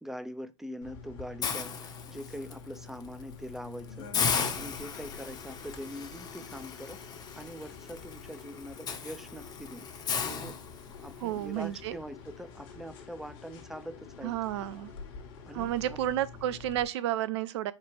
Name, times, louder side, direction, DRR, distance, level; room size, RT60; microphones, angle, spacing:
voice 1, 0.0-4.1 4.5-7.0 7.4-9.9 10.2-10.6 10.9-14.3 15.4-16.0, equal, ahead, 0.4 m, -43 dB
sound 1, 0.8-16.8, left 5 dB, 50° left, 1.2 m, -47 dB
Hiss, 1.4-2.5 3.0-3.2 3.6-3.7 4.1-11.2, left 6 dB, 25° left, 0.8 m, -35 dB
voice 2, 11.2-12.0 14.2-14.9 15.5-17.7, right 12 dB, 60° right, 0.5 m, -31 dB
4.6 x 2.4 x 4.5 m
hypercardioid pair, 95°, 16 cm